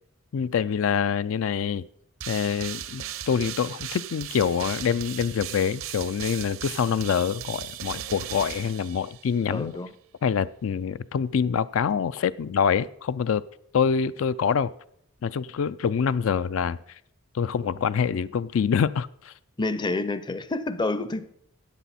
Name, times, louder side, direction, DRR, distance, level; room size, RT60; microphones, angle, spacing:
voice 1, 0.3-1.8 2.3-9.8 10.2-13.4 13.7-14.7 15.2-16.8 17.3-19.3, left 7 dB, 75° left, 0.4 m, -25 dB
sound 1, 2.2-9.5, right 11 dB, 80° right, 0.7 m, -37 dB
voice 2, 9.5-9.9 19.6-21.3, left 2 dB, 20° left, 0.5 m, -28 dB
14.0 x 9.2 x 4.2 m
head